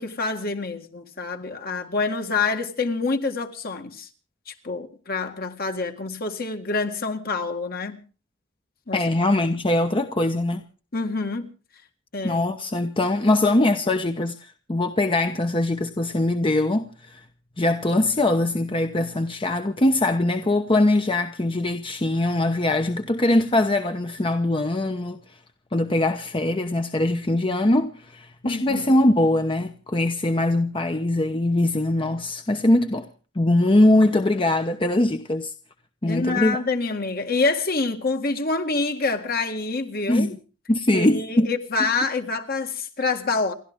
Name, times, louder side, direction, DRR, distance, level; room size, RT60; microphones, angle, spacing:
voice 1, 0.0-4.1 4.5-8.0 8.9-9.1 10.9-11.5 12.1-12.4 28.4-28.8 36.0-40.4 40.9-43.5, left 3 dB, 50° left, 1.9 m, -27 dB
voice 2, 8.9-10.6 12.2-17.2 17.6-25.2 25.7-33.1 33.3-35.5 36.0-36.6 40.1-40.4 40.7-41.5 41.8-41.9, left 1 dB, 25° left, 0.9 m, -22 dB
29.0 x 12.0 x 3.6 m
head